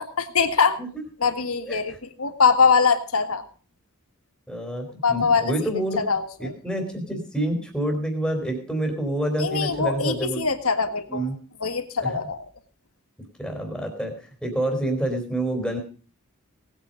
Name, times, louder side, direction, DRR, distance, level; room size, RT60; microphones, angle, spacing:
voice 1, 0.2-0.8 1.2-3.4 5.0-5.4 6.1-6.2 9.4-11.2 11.6-12.4, left 5 dB, 75° left, 8 dB, 1.8 m, -22 dB
voice 2, 1.6-2.0 4.5-6.0 6.4-10.4 11.1-11.4 12.0-12.2 13.4-15.8, right 1 dB, ahead, 2 dB, 3.2 m, -28 dB
18.5 x 9.1 x 5.1 m, 0.39 s
head